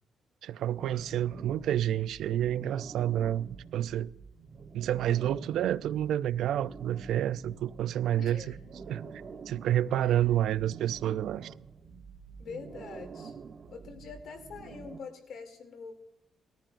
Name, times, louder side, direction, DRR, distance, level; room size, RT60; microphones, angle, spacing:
voice 1, 0.4-4.1 4.7-8.5 8.9-9.1 9.5-11.5, right 11 dB, 85° right, 0.4 m, -29 dB
sound 1, 0.7-15.0, right 5 dB, 45° right, 0.9 m, -47 dB
voice 2, 8.2-8.5 10.0-10.1 12.4-13.3 13.7-15.9, left 5 dB, 70° left, 2.7 m, -44 dB
19.5 x 14.0 x 2.5 m
cardioid pair, 120°, 0 cm